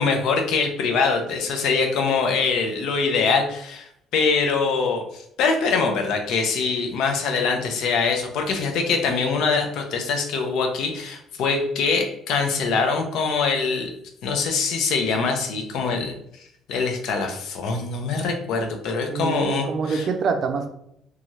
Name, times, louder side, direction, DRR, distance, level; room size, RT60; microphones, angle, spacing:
voice 1, 0.0-13.9 14.2-16.1 16.7-20.1, left 4 dB, 75° left, 4 dB, 0.5 m, -23 dB
voice 2, 19.1-20.7, right 5 dB, 45° right, 5 dB, 0.4 m, -25 dB
3.0 x 2.3 x 2.7 m, 0.74 s
cardioid pair, 140°, 0 cm